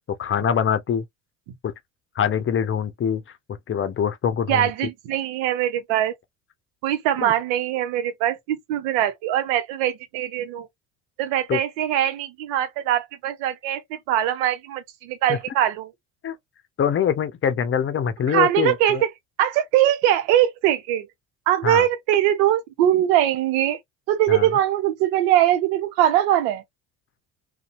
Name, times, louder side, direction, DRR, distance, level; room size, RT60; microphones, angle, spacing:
voice 1, 0.2-1.0 1.6-1.7 2.2-3.2 3.7-4.7 7.2-7.3 11.5-11.6 15.3-15.4 16.2-16.4 16.8-19.0 21.6-21.9 24.3-24.5, left 8 dB, 35° left, 0.7 m, -23 dB
voice 2, 4.5-6.1 6.8-10.7 11.2-15.9 18.3-19.1 19.4-21.1 21.5-23.8 24.1-26.6, right 12 dB, 75° right, 0.8 m, -22 dB
2.7 x 2.2 x 2.5 m
hypercardioid pair, 60°, 36 cm